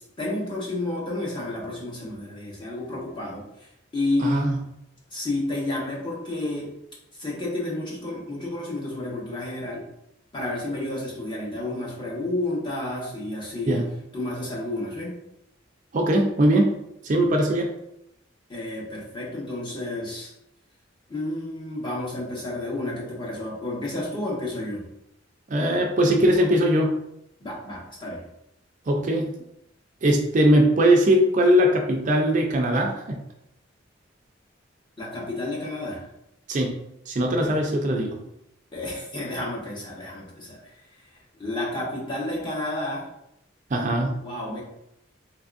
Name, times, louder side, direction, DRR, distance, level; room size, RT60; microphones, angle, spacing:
voice 1, 0.2-3.4 3.9-4.5 5.1-6.7 7.2-9.8 10.3-13.8 14.1-15.1 18.5-20.3 21.1-24.8 27.4-28.2 35.0-36.0 37.4-37.6 38.7-40.6 41.4-43.1 44.2-44.6, left 2 dB, 25° left, -3 dB, 0.9 m, -30 dB
voice 2, 4.2-4.6 13.7-13.9 15.9-16.7 17.0-17.7 25.5-26.9 28.9-29.3 30.0-33.2 36.5-36.8 37.1-38.2 43.7-44.2, right 1 dB, 40° right, 2 dB, 0.4 m, -20 dB
3.4 x 3.3 x 2.4 m, 0.82 s
head